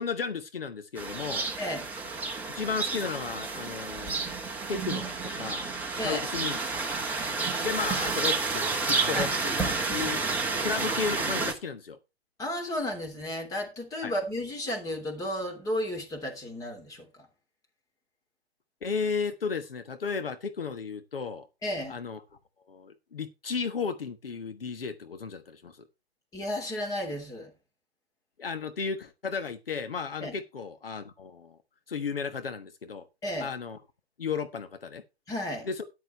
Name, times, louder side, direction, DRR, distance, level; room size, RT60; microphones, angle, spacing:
voice 1, 0.0-1.5 2.5-4.4 4.7-5.7 6.0-6.6 7.6-10.2 10.6-12.0 14.0-14.1 18.8-21.5 21.9-22.2 22.7-25.8 28.4-31.6 31.9-33.1 33.4-33.8 34.2-35.0 35.6-35.9, left 5 dB, 60° left, 1.4 m, -34 dB
sound 1, 1.0-11.5, right 4 dB, 5° right, 1.6 m, -30 dB
voice 2, 1.6-1.9 2.1-2.3 6.0-6.2 9.1-9.3 12.4-17.3 21.6-22.0 26.3-27.5 30.2-30.3 33.2-33.5 35.3-35.7, left 1 dB, 10° left, 3.0 m, -33 dB
13.5 x 10.5 x 3.2 m
figure-of-eight pair, 125°, 32 cm